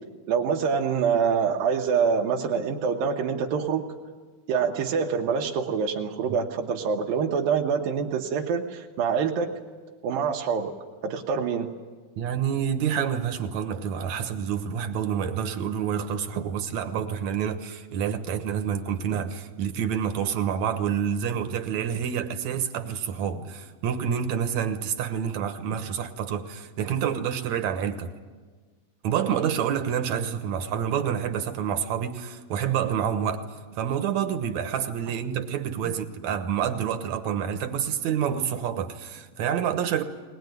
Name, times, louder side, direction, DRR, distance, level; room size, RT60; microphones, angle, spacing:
voice 1, 0.3-3.9 4.5-9.5 10.0-10.7 11.0-11.7, right 6 dB, 85° right, 2.9 m, -25 dB
voice 2, 12.2-28.1 29.0-33.5 33.7-40.0, right 8 dB, 65° right, 2.2 m, -28 dB
20.5 x 20.5 x 9.3 m
omnidirectional pair, 4.0 m